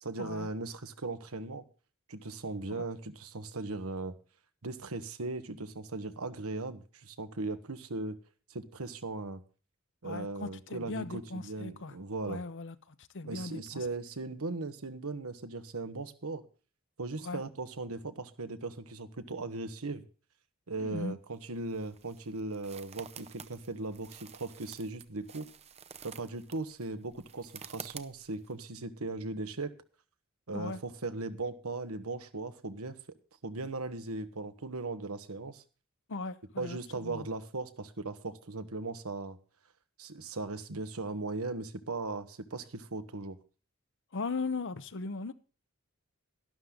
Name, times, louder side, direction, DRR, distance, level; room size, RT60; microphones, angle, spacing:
voice 1, 0.0-1.6 2.1-4.2 4.6-8.2 8.5-9.4 10.0-12.4 13.3-16.4 17.0-20.0 20.7-25.5 26.0-29.7 30.5-33.0 33.4-35.6 36.6-39.4 40.0-43.4, right 3 dB, 80° right, 1.3 m, -38 dB
voice 2, 10.0-12.0 12.3-13.9 17.2-17.4 20.8-21.1 30.5-30.8 36.1-37.3 44.1-45.3, left 3 dB, 60° left, 0.8 m, -38 dB
sound 1, 21.3-28.5, right 7 dB, 30° right, 0.7 m, -50 dB
12.0 x 12.0 x 3.8 m
head